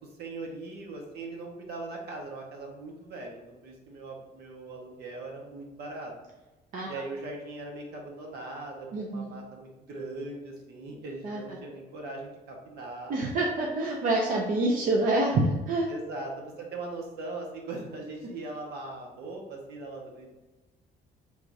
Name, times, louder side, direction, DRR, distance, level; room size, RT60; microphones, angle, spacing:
voice 1, 0.2-6.1 6.9-13.2 15.9-20.3, right 2 dB, 75° right, 0 dB, 1.1 m, -40 dB
voice 2, 8.9-9.3 11.2-11.4 13.1-15.9, right 2 dB, 55° right, -1 dB, 0.7 m, -26 dB
4.6 x 3.6 x 2.6 m, 1.1 s
cardioid pair, 110°, 17 cm